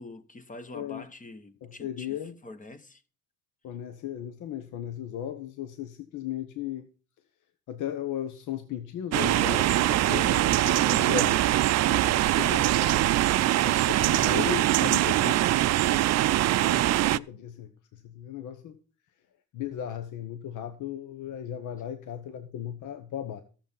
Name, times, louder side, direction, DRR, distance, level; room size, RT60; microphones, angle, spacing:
voice 1, 0.0-3.0 12.0-12.4 13.1-15.9, left 2 dB, 25° left, 1.1 m, -46 dB
voice 2, 0.7-1.0 1.6-2.3 3.6-6.9 7.7-11.4 11.9-13.2 13.6-13.7 14.0-15.4 16.5-18.8 19.5-23.4, left 10 dB, 80° left, 1.0 m, -36 dB
sound 1, 9.1-17.2, right 14 dB, 60° right, 0.4 m, -23 dB
13.5 x 7.2 x 5.5 m
cardioid pair, 90°, 30 cm